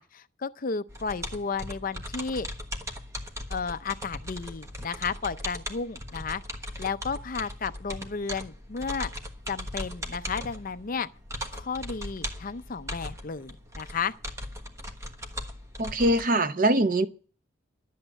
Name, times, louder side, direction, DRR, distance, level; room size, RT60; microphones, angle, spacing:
voice 1, 0.0-2.5 3.5-6.4 6.8-9.1 9.5-11.1 11.5-14.1, left 5 dB, 40° left, 0.5 m, -33 dB
sound 1, 0.9-16.3, equal, 15° right, 1.2 m, -38 dB
voice 2, 15.8-17.1, right 1 dB, 40° right, 0.7 m, -23 dB
12.0 x 8.5 x 7.8 m
head